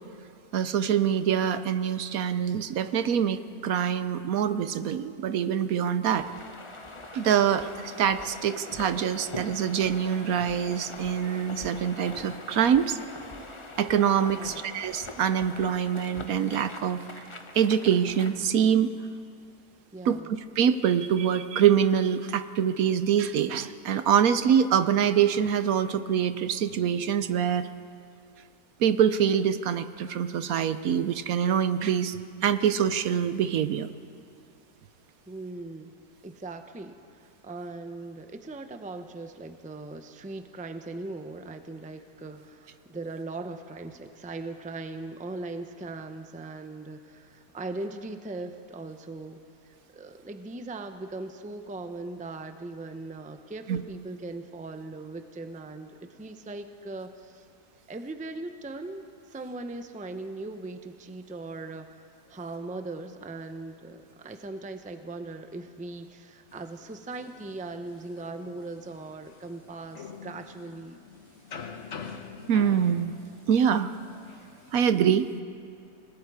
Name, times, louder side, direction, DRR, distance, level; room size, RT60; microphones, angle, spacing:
voice 1, 0.5-6.3 7.1-13.0 13.8-17.0 17.5-18.9 20.1-20.2 20.6-27.7 28.8-32.2 32.4-33.9 53.7-53.8 72.5-73.1 73.5-73.9 74.7-75.3, right 8 dB, 70° right, 12 dB, 1.1 m, -25 dB
sound 1, 6.1-18.4, left 2 dB, 20° left, 1.0 m, -43 dB
voice 2, 14.3-14.6 19.9-20.3 35.3-35.9 36.2-49.4 49.6-55.9 56.2-57.5 57.9-59.0 59.3-71.0, right 2 dB, 10° right, 7 dB, 0.6 m, -39 dB
sound 2, 66.5-74.8, left 6 dB, 50° left, 1.4 m, -46 dB
28.5 x 19.0 x 4.9 m, 2.4 s
omnidirectional pair, 1.6 m